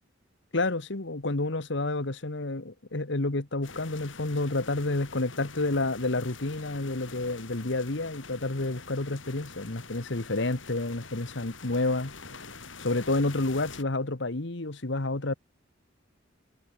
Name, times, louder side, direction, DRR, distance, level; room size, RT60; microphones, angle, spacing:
voice 1, 0.5-12.1 12.8-15.3, left 2 dB, 65° left, 1.6 m, -29 dB
sound 1, 3.6-13.8, left 4 dB, 85° left, 5.7 m, -46 dB
head